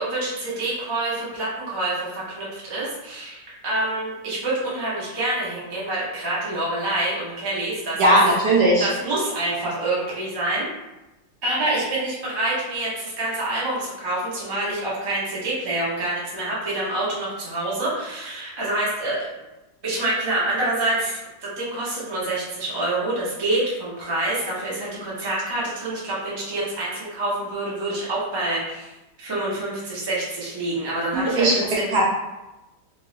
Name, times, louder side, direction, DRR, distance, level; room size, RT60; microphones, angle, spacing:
voice 1, 0.0-8.2 8.8-10.7 11.4-19.3 19.8-28.9 29.2-31.9, right 2 dB, 25° right, -7 dB, 0.6 m, -27 dB
voice 2, 8.0-8.9 31.1-31.6 31.9-32.1, right 1 dB, 65° right, -4 dB, 1.2 m, -17 dB
3.5 x 3.0 x 3.2 m, 1.0 s
omnidirectional pair, 2.2 m